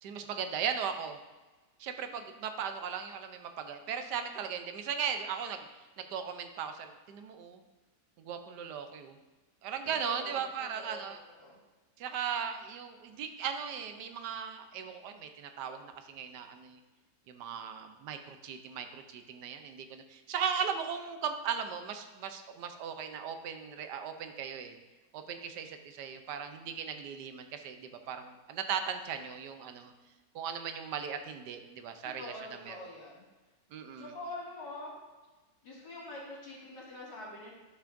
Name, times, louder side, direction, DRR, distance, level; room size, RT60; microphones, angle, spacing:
voice 1, 0.0-1.2 1.8-5.7 6.0-7.6 8.2-9.2 9.6-11.2 12.0-16.8 17.3-24.8 25.1-29.9 30.3-32.8 33.7-34.1, right 7 dB, 80° right, 7 dB, 1.3 m, -37 dB
voice 2, 9.8-11.6 32.0-33.2 34.0-34.9 35.6-37.5, left 2 dB, 90° left, -6 dB, 2.9 m, -45 dB
11.0 x 5.7 x 2.6 m, 1.2 s
omnidirectional pair, 1.8 m